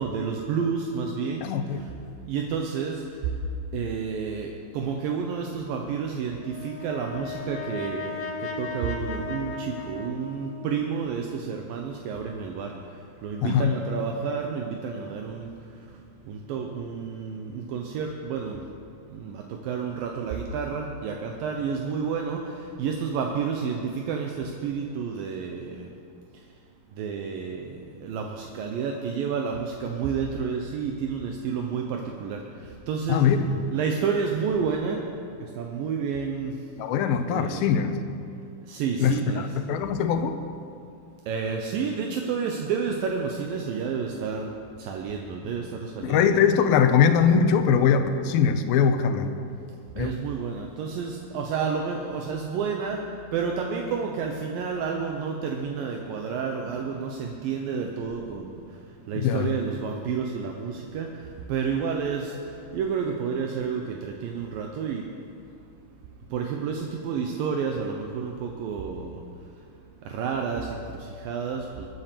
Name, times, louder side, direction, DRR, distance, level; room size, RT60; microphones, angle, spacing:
voice 1, 0.0-1.4 2.3-3.0 3.7-6.4 6.6-8.3 8.6-12.7 13.2-15.5 16.3-18.6 19.1-22.4 22.8-25.9 27.0-27.8 28.0-32.4 32.9-33.2 33.7-35.0 35.6-36.5 37.3-37.6 38.7-39.5 41.3-44.5 44.8-46.2 50.0-53.0 53.3-58.5 59.1-61.1 61.5-62.3 62.7-65.0 66.3-69.2 70.1-70.7 71.3-71.9, right 6 dB, 75° right, 2 dB, 2.6 m, -30 dB
voice 2, 1.4-1.8 13.4-13.7 33.1-33.5 36.8-38.0 39.0-39.2 39.7-40.4 46.0-49.3 50.0-50.1 59.2-59.5, left 7 dB, 85° left, 8 dB, 2.7 m, -21 dB
Brass instrument, 6.4-10.8, left 4 dB, 60° left, 1.6 m, -36 dB
22.5 x 8.9 x 6.8 m, 2.5 s
omnidirectional pair, 4.2 m